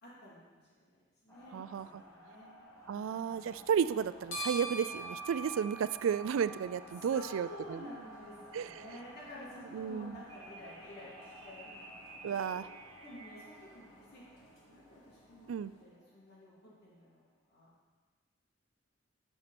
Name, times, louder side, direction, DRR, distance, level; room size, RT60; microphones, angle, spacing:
voice 1, 0.0-3.6 7.0-11.9 12.2-12.6 13.0-17.7, equal, 55° left, -7 dB, 3.1 m, -52 dB
sound 1, 1.3-17.1, left 1 dB, 15° left, 1.7 m, -55 dB
voice 2, 1.5-2.0 2.9-7.8 8.5-8.7 9.7-10.2 12.2-12.6 15.5-15.7, right 7 dB, 85° right, 15 dB, 0.3 m, -33 dB
sound 2, 3.3-15.8, right 2 dB, 85° left, 1.7 m, -48 dB
sound 3, 10.3-13.8, right 2 dB, 25° right, 1.2 m, -53 dB
10.5 x 6.6 x 4.3 m, 1.4 s
head